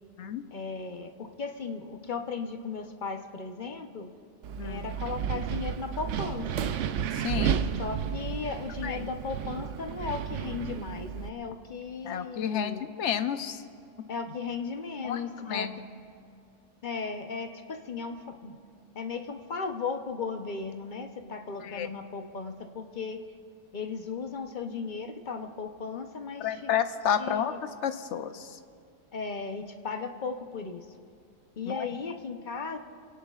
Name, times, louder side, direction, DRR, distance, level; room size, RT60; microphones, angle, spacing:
voice 1, 0.5-4.1 4.6-6.7 7.8-12.8 14.1-15.7 16.8-18.6 18.9-23.2 23.7-26.6 27.2-27.6 29.1-30.9 31.6-32.8, left 4 dB, 45° left, 5 dB, 0.9 m, -36 dB
Wind, 4.4-11.3, right 8 dB, 80° right, 0.9 m, -32 dB
voice 2, 7.1-7.7 8.8-9.1 12.0-13.6 15.0-15.8 21.6-21.9 26.4-28.6 31.7-31.9, left 8 dB, 75° left, 9 dB, 1.0 m, -31 dB
26.0 x 17.5 x 2.4 m, 2.3 s
omnidirectional pair, 1.2 m